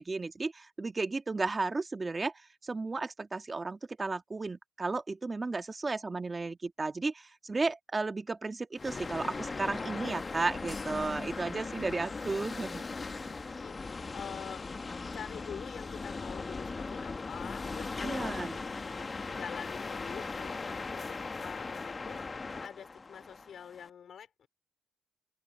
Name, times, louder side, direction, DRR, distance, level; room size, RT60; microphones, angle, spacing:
voice 1, 0.0-13.3 18.0-18.6, right 3 dB, 25° right, 1.9 m, -34 dB
sound 1, 8.8-23.9, left 4 dB, 30° left, 1.6 m, -39 dB
voice 2, 13.6-14.7 15.1-18.6 19.3-24.5, left 8 dB, 60° left, 5.3 m, -46 dB
open air
cardioid pair, 90°, 0 cm